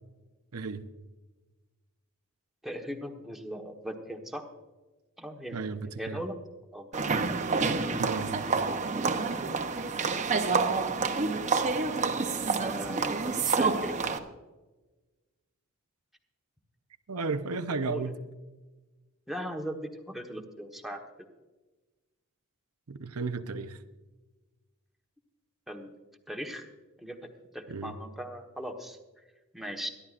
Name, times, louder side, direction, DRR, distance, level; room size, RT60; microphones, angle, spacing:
voice 1, 0.5-0.9 5.5-6.2 8.0-8.5 17.1-18.2 22.9-23.8 27.7-27.9, right 4 dB, 85° right, 9 dB, 0.7 m, -34 dB
voice 2, 2.6-4.4 5.2-5.7 6.0-6.4 6.7-7.0 12.6-14.1 17.8-18.0 19.3-21.0 25.7-25.9 26.3-26.7 27.0-27.2 27.5-29.0 29.5-29.9, equal, ahead, 2 dB, 1.2 m, -38 dB
sound 1, 6.9-14.2, right 4 dB, 35° right, 0.8 m, -28 dB
24.5 x 11.0 x 2.5 m, 1.2 s
head